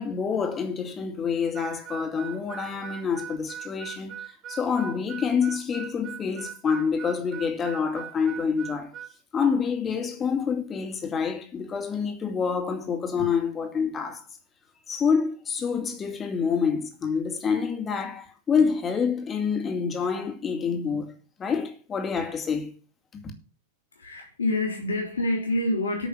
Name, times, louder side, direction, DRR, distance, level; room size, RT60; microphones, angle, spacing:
voice 1, 0.0-4.1 4.5-8.9 9.3-14.2 14.9-21.1 21.4-22.7 23.1-23.2, left 6 dB, 20° left, 2.4 m, -27 dB
Harmonica, 1.5-9.1, right 10 dB, 35° right, 1.6 m, -40 dB
voice 2, 23.9-26.1, left 1 dB, 70° left, 3.3 m, -27 dB
9.2 x 6.6 x 6.5 m
figure-of-eight pair, 90°, 0 cm